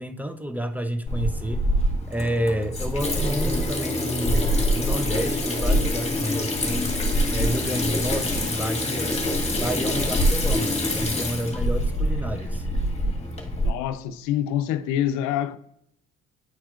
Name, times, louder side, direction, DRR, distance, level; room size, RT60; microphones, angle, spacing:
voice 1, 0.0-1.6 2.1-6.9 7.3-9.2 9.5-12.6, equal, 5° right, 0.7 m, -30 dB
Water tap faucet / Sink (filling or washing), 1.1-13.7, equal, 20° left, 1.6 m, -25 dB
voice 2, 13.6-15.6, left 11 dB, 80° left, 0.6 m, -26 dB
9.7 x 4.3 x 2.5 m
supercardioid pair, 65°, 29 cm